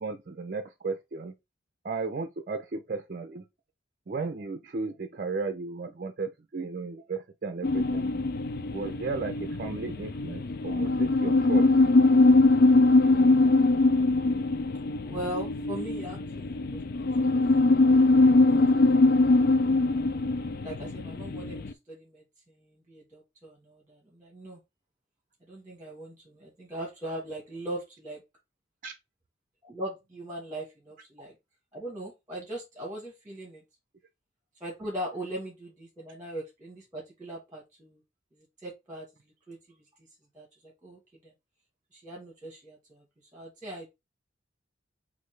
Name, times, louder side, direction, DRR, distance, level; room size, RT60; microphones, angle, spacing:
voice 1, 0.0-1.3 1.8-3.4 4.1-8.1 8.7-11.7 13.0-13.3 28.8-28.9, right 4 dB, 45° right, 0.5 m, -35 dB
sound 1, 7.6-21.7, left 2 dB, 50° left, 0.4 m, -22 dB
voice 2, 15.0-17.4 17.9-18.8 20.6-24.6 25.5-28.2 29.6-31.3 31.7-33.6 34.6-38.0 38.4-39.1 39.5-39.6 40.3-40.5 40.8-41.3 41.9-43.0 43.3-43.9, right 1 dB, 20° right, 1.3 m, -40 dB
5.4 x 2.6 x 3.2 m
head